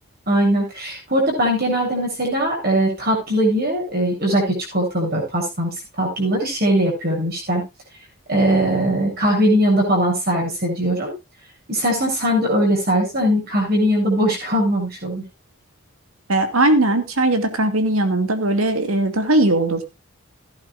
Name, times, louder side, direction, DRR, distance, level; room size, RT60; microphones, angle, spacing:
voice 1, 0.3-5.7 6.0-7.6 8.3-11.1 11.7-15.2, equal, 45° right, 0 dB, 8.0 m, -20 dB
voice 2, 16.3-19.8, right 2 dB, 85° right, 8 dB, 2.4 m, -19 dB
16.0 x 11.5 x 2.6 m, 0.25 s
head